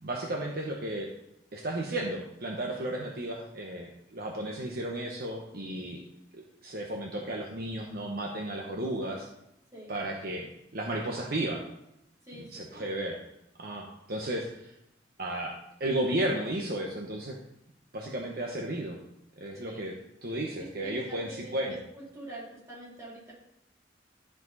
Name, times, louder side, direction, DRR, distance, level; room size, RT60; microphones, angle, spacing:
voice 1, 0.0-1.1 1.5-6.0 6.3-9.3 9.9-10.5 10.7-11.6 12.4-13.2 13.6-14.7 15.2-17.4 17.9-19.0 19.4-19.9 20.2-21.7, right 1 dB, 55° right, 0 dB, 1.1 m, -33 dB
voice 2, 12.2-13.0 19.5-19.9 20.6-23.3, right 1 dB, 20° right, -6 dB, 3.8 m, -45 dB
13.0 x 4.9 x 4.1 m, 0.85 s
head